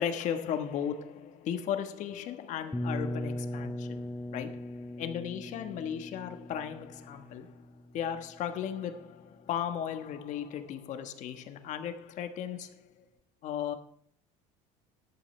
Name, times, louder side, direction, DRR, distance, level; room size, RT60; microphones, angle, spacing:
voice 1, 0.0-7.5 7.9-13.0 13.4-13.7, left 9 dB, 50° left, 1.3 m, -36 dB
sound 1, 2.7-8.5, left 1 dB, 5° left, 0.5 m, -39 dB
13.5 x 11.5 x 3.3 m
cardioid pair, 140°, 16 cm